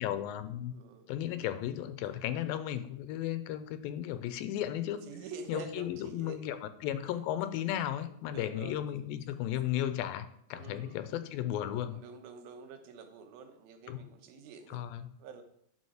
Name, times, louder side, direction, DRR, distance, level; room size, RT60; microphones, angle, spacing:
voice 1, 0.0-0.7 1.1-5.0 5.5-12.0 13.9-14.0 14.7-15.1, left 11 dB, 85° left, 11 dB, 2.4 m, -35 dB
voice 2, 0.7-1.1 5.1-6.4 7.1-7.2 8.3-8.8 10.5-11.0 11.9-14.8 15.2-15.4, right 5 dB, 85° right, 6 dB, 2.9 m, -47 dB
9.7 x 6.2 x 4.9 m, 0.71 s
omnidirectional pair, 4.2 m